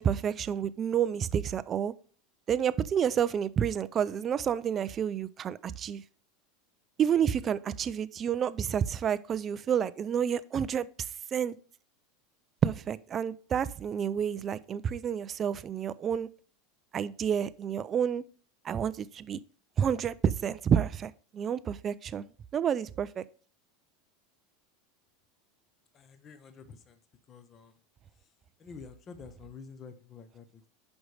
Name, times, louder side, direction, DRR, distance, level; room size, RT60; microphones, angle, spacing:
voice 1, 0.0-1.9 2.5-6.0 7.0-10.9 11.3-11.6 12.6-16.3 16.9-18.2 18.6-19.4 19.8-22.3 22.5-23.2, right 8 dB, 20° right, 0.4 m, -29 dB
voice 2, 25.9-27.0 27.3-27.8 28.6-30.7, left 5 dB, 20° left, 0.8 m, -49 dB
11.0 x 5.3 x 3.3 m
supercardioid pair, 170°, 0 cm